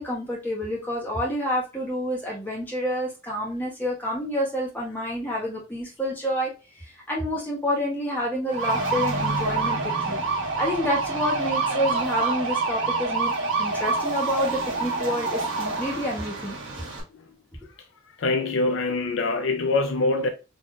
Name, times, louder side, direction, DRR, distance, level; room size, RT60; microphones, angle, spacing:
voice 1, 0.0-6.5 6.8-10.2 10.6-13.3 13.6-16.6, equal, 10° left, 1.5 m, -28 dB
sound 1, 8.5-17.0, right 3 dB, 75° right, 1.3 m, -27 dB
voice 2, 18.2-20.3, left 3 dB, 75° left, 0.5 m, -24 dB
4.0 x 3.1 x 2.5 m
head